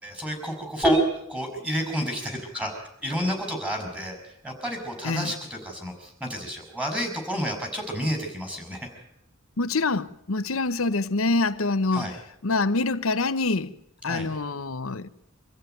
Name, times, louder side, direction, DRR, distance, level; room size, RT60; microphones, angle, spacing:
voice 1, 0.0-8.9 11.9-12.1 14.1-14.3, equal, 5° right, 5.7 m, -29 dB
voice 2, 9.6-12.2 12.4-13.7 14.0-15.1, left 3 dB, 85° left, 1.0 m, -25 dB
25.0 x 14.5 x 9.2 m
head